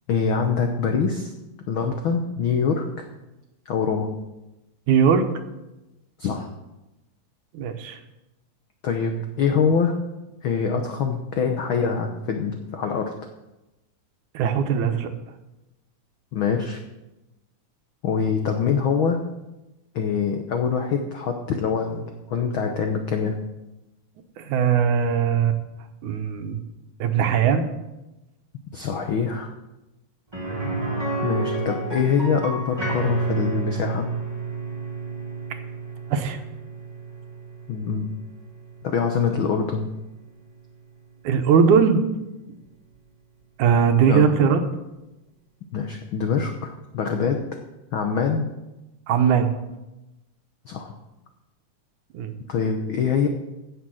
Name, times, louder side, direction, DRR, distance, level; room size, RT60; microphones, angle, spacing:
voice 1, 0.1-1.3 1.7-3.0 3.7-4.1 6.2-6.5 8.8-9.9 10.4-13.1 16.3-16.8 18.0-19.2 19.9-23.4 28.7-29.5 31.2-34.1 37.7-38.1 38.8-39.9 44.1-44.3 45.7-47.4 47.9-48.5 50.6-50.9 52.5-53.3, left 6 dB, 80° left, 4 dB, 1.1 m, -24 dB
voice 2, 4.9-5.2 7.5-8.0 14.3-15.1 24.4-25.6 26.0-26.6 27.0-27.6 36.1-36.4 41.2-42.0 43.6-44.6 49.1-49.5 52.1-52.4, right 7 dB, 75° right, 7 dB, 2.3 m, -19 dB
sound 1, 30.3-40.1 40.4-40.5 42.9-43.0, right 3 dB, 10° right, 2.1 m, -31 dB
16.0 x 6.6 x 6.3 m, 1.0 s
omnidirectional pair, 3.6 m